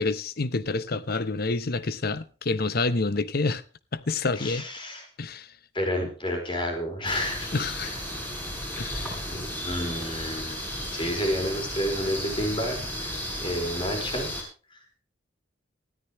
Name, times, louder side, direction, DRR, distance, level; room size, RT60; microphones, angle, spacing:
voice 1, 0.0-3.6 3.9-4.7 5.2-5.5 7.5-7.9 8.8-9.2, left 3 dB, 55° left, 0.9 m, -28 dB
voice 2, 4.4-5.0 5.7-7.5 7.8-7.9 9.2-10.6 10.9-14.3, equal, 25° left, 4.7 m, -30 dB
sound 1, 7.0-14.4, equal, 10° left, 6.1 m, -34 dB
19.5 x 13.5 x 3.1 m
head